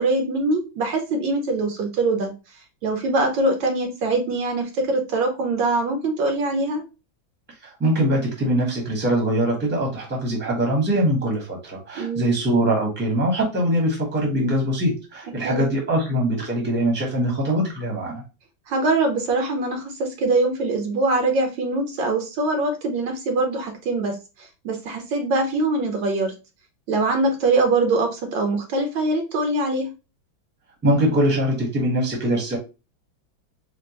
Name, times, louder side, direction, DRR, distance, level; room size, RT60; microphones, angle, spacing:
voice 1, 0.0-2.3 2.8-6.8 12.0-12.3 15.4-15.7 18.7-26.3 26.9-29.9, right 2 dB, 70° right, 3 dB, 1.5 m, -23 dB
voice 2, 7.8-18.2 30.8-32.6, right 1 dB, 5° right, -1 dB, 0.9 m, -22 dB
4.4 x 2.4 x 2.9 m, 0.29 s
omnidirectional pair, 2.2 m